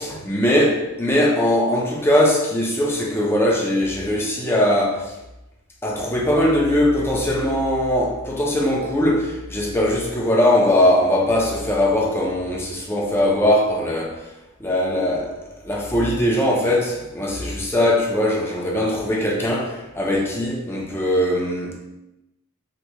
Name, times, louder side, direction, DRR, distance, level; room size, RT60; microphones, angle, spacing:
voice 1, 0.0-5.1 5.8-14.2 14.6-15.3 15.6-21.7, left 1 dB, 10° left, 0.5 m, -20 dB
2.9 x 2.3 x 3.5 m
head